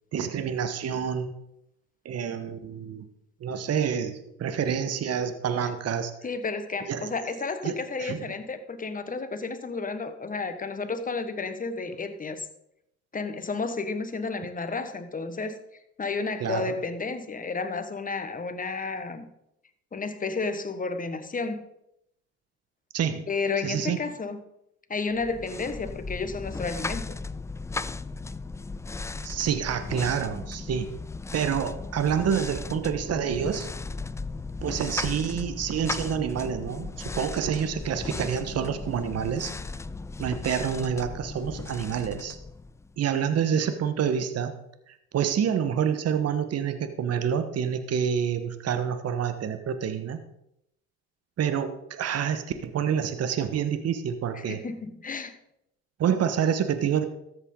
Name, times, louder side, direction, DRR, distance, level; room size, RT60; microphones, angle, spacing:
voice 1, 0.1-1.4 2.0-3.0 3.4-6.1 6.9-7.1 7.6-8.2 16.4-16.8 22.9-23.2 23.6-24.0 29.2-30.9 31.3-33.7 34.6-39.5 40.2-42.4 43.0-44.5 44.9-50.2 51.4-54.6 56.0-57.0, right 8 dB, 50° right, 9 dB, 1.3 m, -28 dB
voice 2, 6.2-12.5 13.1-15.5 16.0-19.3 19.9-21.6 23.3-24.4 24.9-27.2 54.3-55.3, left 4 dB, 25° left, 9 dB, 1.4 m, -32 dB
sound 1, 25.2-43.0, left 3 dB, 10° left, 0.3 m, -36 dB
13.5 x 7.9 x 3.9 m, 0.79 s
supercardioid pair, 70°, 32 cm